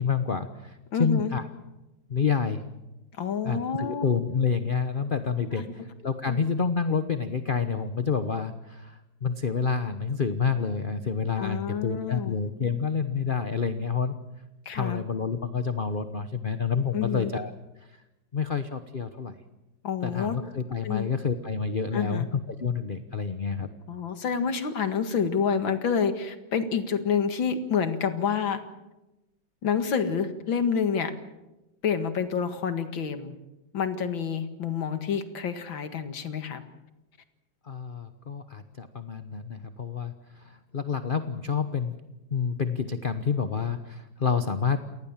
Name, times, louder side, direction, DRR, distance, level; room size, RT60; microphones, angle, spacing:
voice 1, 0.0-1.5 2.1-2.6 3.4-14.2 14.7-17.5 18.3-19.3 20.0-23.7 37.6-42.0 42.3-44.8, left 5 dB, 35° left, 10 dB, 1.0 m, -28 dB
voice 2, 0.9-1.4 3.2-4.0 5.5-5.7 6.3-6.4 11.4-12.4 14.7-15.0 16.9-17.3 19.8-20.4 20.8-21.1 21.9-22.3 23.9-28.6 29.6-31.1 31.8-33.3 33.7-36.6, left 7 dB, 90° left, 9 dB, 2.6 m, -28 dB
28.0 x 19.5 x 7.4 m, 1.0 s
omnidirectional pair, 2.1 m